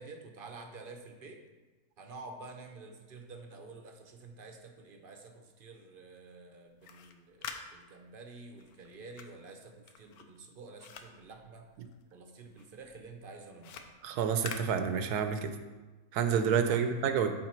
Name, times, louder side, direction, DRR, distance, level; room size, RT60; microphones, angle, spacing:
voice 1, 0.0-1.4 2.0-11.7 12.1-13.9 16.7-17.1, right 3 dB, 50° right, 4 dB, 0.6 m, -49 dB
sound 1, 6.7-12.2 12.5-15.5, left 6 dB, 75° left, 1.1 m, -48 dB
voice 2, 14.0-15.5 16.1-17.3, right 7 dB, 85° right, 8 dB, 1.2 m, -29 dB
7.9 x 4.6 x 4.4 m, 1.2 s
omnidirectional pair, 1.6 m